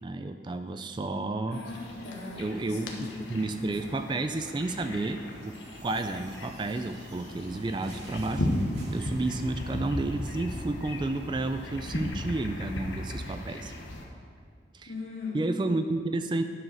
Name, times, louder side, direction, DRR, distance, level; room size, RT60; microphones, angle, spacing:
voice 1, 0.0-1.6 2.4-5.5 5.8-8.5 8.9-13.7 14.7-14.9 15.3-16.4, right 2 dB, 25° right, 8 dB, 0.3 m, -31 dB
voice 2, 1.5-3.5 14.9-15.4, left 4 dB, 65° left, -3 dB, 2.1 m, -39 dB
sound 1, 1.7-14.0, left 1 dB, 85° left, 1.2 m, -36 dB
sound 2, 5.3-9.8, right 3 dB, 75° right, 1.2 m, -54 dB
10.5 x 4.8 x 6.3 m, 2.1 s
head